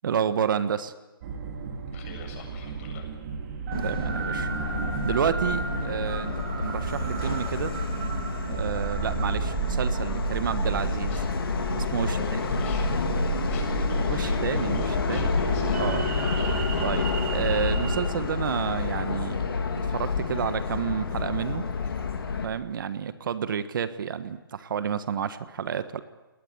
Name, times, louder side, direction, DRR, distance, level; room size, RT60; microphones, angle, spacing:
voice 1, 0.0-0.9 3.7-4.5 5.0-7.7 8.5-11.2 11.7-12.2 14.1-15.3 15.7-16.0 16.8-19.4 19.8-21.6 22.4-26.0, right 8 dB, 60° right, 12 dB, 1.4 m, -30 dB
sound 1, 1.2-18.0, right 6 dB, 45° right, 3.4 m, -32 dB
voice 2, 1.9-3.1 11.1-11.3 12.0-12.9 13.4-17.1 21.8-21.9, left 4 dB, 35° left, 3 dB, 8.0 m, -46 dB
Subway metro underground, 3.7-22.5, left 5 dB, 80° left, 3.3 m, -29 dB
27.0 x 19.5 x 8.4 m, 1.1 s
hypercardioid pair, 145°, 12 cm